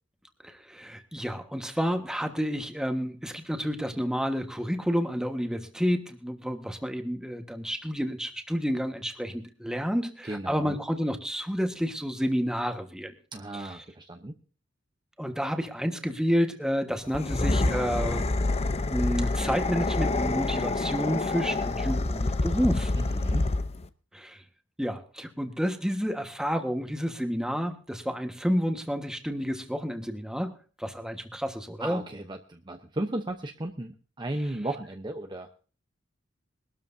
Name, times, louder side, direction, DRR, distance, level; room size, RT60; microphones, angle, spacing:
voice 1, 0.4-13.1 13.5-13.7 15.2-18.3 18.8-22.9 24.1-24.4 24.8-32.0, equal, 5° right, 6 dB, 1.4 m, -30 dB
voice 2, 10.2-10.8 13.3-14.4 23.0-23.5 31.8-35.5, right 1 dB, 25° right, 5 dB, 0.8 m, -35 dB
sound 1, 17.1-23.9, left 2 dB, 35° left, 0.7 m, -27 dB
23.0 x 13.0 x 2.7 m, 0.38 s
head